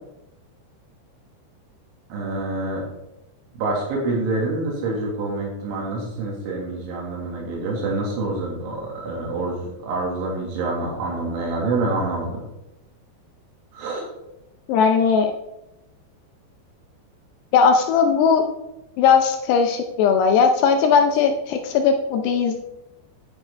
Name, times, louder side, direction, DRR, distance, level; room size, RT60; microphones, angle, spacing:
voice 1, 2.1-2.8 3.6-12.4 13.7-14.1, right 2 dB, 85° right, -2 dB, 4.3 m, -26 dB
voice 2, 14.7-15.3 17.5-18.4 19.0-22.6, left 6 dB, 80° left, 5 dB, 2.5 m, -18 dB
9.8 x 9.4 x 3.3 m, 0.90 s
omnidirectional pair, 5.4 m